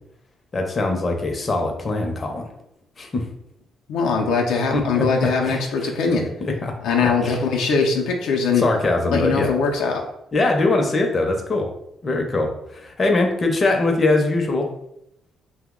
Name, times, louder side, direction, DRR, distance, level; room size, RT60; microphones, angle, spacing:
voice 1, 0.5-2.5 3.0-3.2 4.7-5.1 5.4-5.9 6.4-6.7 7.0-7.4 8.6-9.5 10.3-11.7 12.0-14.7, left 2 dB, 35° left, 2 dB, 0.5 m, -22 dB
voice 2, 3.9-6.3 6.8-8.6 9.1-10.0, left 4 dB, 90° left, 1 dB, 0.4 m, -21 dB
2.7 x 2.0 x 3.6 m, 0.80 s
cardioid pair, 90°, 0 cm